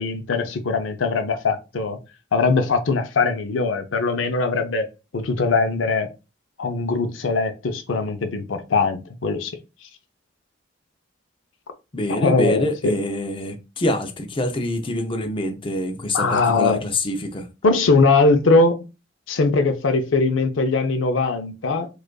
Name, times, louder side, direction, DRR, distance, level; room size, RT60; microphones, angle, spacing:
voice 1, 0.0-2.0 2.3-4.9 5.1-6.1 6.6-9.5 12.2-12.9 16.1-16.8 17.6-18.8 19.3-21.9, left 3 dB, 80° left, 0.5 m, -21 dB
voice 2, 11.9-17.5, left 1 dB, 25° left, 0.5 m, -25 dB
4.9 x 2.4 x 2.2 m
head